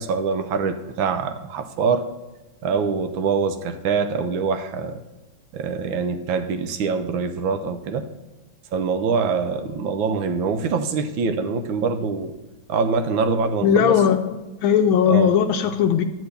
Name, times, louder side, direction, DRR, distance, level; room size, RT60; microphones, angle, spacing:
voice 1, 0.0-2.1 2.6-5.0 5.5-8.1 8.7-12.3 12.7-14.0 15.0-15.4, right 5 dB, 75° right, 8 dB, 1.4 m, -24 dB
voice 2, 13.6-16.0, left 8 dB, 75° left, 7 dB, 1.3 m, -18 dB
11.5 x 4.6 x 8.1 m, 1.1 s
omnidirectional pair, 2.4 m